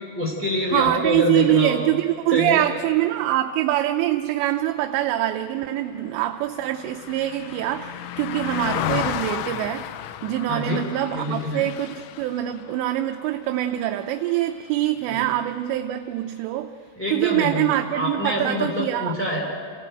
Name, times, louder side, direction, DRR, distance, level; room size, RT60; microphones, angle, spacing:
voice 1, 0.1-1.8 2.3-2.8 10.5-10.8 11.1-11.6 15.1-15.3 16.9-19.4, left 1 dB, 5° left, -3 dB, 1.5 m, -26 dB
voice 2, 0.7-9.9 10.2-16.7 17.1-19.1, right 14 dB, 80° right, 6 dB, 2.8 m, -24 dB
Car passing by, 5.2-14.8 15.2-15.4, left 12 dB, 80° left, 3.1 m, -34 dB
27.0 x 16.5 x 9.0 m, 2.2 s
omnidirectional pair, 5.3 m